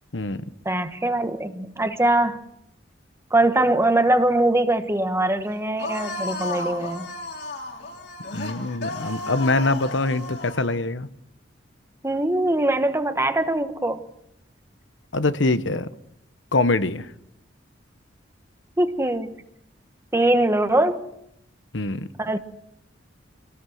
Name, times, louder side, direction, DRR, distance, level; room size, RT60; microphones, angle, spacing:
voice 1, 0.1-0.4 8.3-11.1 15.1-15.9 16.5-17.1 21.7-22.1, left 2 dB, 85° left, 12 dB, 1.2 m, -24 dB
voice 2, 0.6-2.4 3.3-7.1 12.0-14.0 18.8-19.3 20.1-21.0 22.2-22.4, right 1 dB, 15° right, 8 dB, 1.2 m, -22 dB
sound 1, 5.8-10.7, left 2 dB, 60° left, 3.5 m, -33 dB
26.0 x 18.5 x 7.8 m, 0.80 s
head